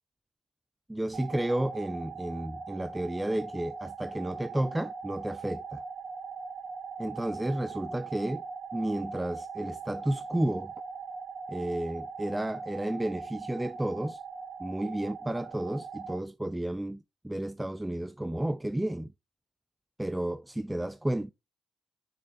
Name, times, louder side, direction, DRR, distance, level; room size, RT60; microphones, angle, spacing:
voice 1, 0.9-5.8 7.0-8.4 8.7-10.7 11.5-14.2 14.6-19.1 20.0-21.3, right 1 dB, 10° right, 0.3 m, -32 dB
sound 1, 1.1-16.2, right 5 dB, 50° right, 1.7 m, -41 dB
6.5 x 6.1 x 2.7 m
cardioid pair, 90°, 0 cm